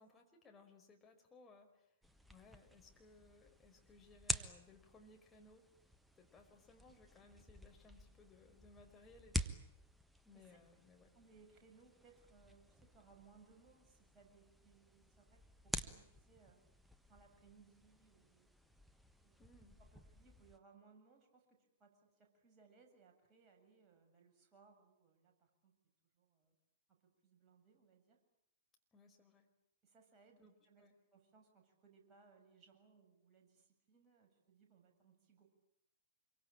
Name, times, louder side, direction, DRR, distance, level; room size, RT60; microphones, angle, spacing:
voice 1, 0.0-2.0 2.3-5.7 6.2-9.5 10.2-11.1 19.4-19.8 28.9-29.5 30.4-30.5 30.8-30.9, left 3 dB, 15° left, 2 dB, 5.2 m, -63 dB
sound 1, 2.0-20.6, equal, 5° right, 1.4 m, -49 dB
voice 2, 11.1-16.6 17.1-18.5 19.2-19.5 19.8-25.7 26.1-26.6 26.9-28.2 29.8-35.5, right 5 dB, 25° right, 2 dB, 7.6 m, -67 dB
27.0 x 24.0 x 8.9 m, 0.75 s
figure-of-eight pair, 105°, 0 cm